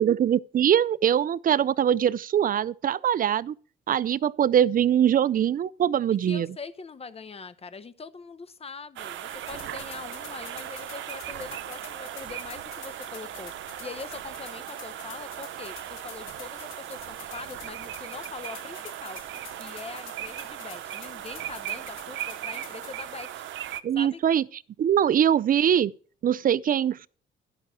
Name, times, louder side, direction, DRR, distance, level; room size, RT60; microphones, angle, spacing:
voice 1, 0.0-3.5 3.9-6.5 23.8-24.4 24.8-25.9 26.2-27.1, right 9 dB, 45° right, 0.5 m, -22 dB
voice 2, 6.1-19.2 19.6-23.5 23.9-24.2, left 5 dB, 30° left, 0.9 m, -42 dB
sound 1, 9.0-23.8, right 12 dB, 75° right, 0.7 m, -38 dB
sound 2, 9.3-22.9, left 9 dB, 85° left, 1.3 m, -49 dB
12.0 x 5.9 x 6.8 m
cardioid pair, 90°, 20 cm